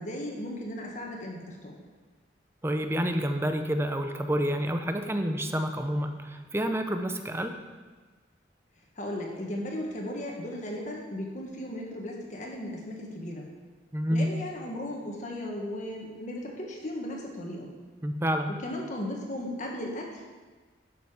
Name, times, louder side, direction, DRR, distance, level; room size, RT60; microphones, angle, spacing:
voice 1, 0.0-1.8 9.0-13.5 14.1-17.7 18.6-20.2, left 1 dB, 40° left, 0 dB, 1.5 m, -36 dB
voice 2, 2.6-7.5 13.9-14.3 18.0-18.5, equal, 15° right, 6 dB, 0.7 m, -28 dB
11.5 x 6.8 x 5.0 m, 1.4 s
head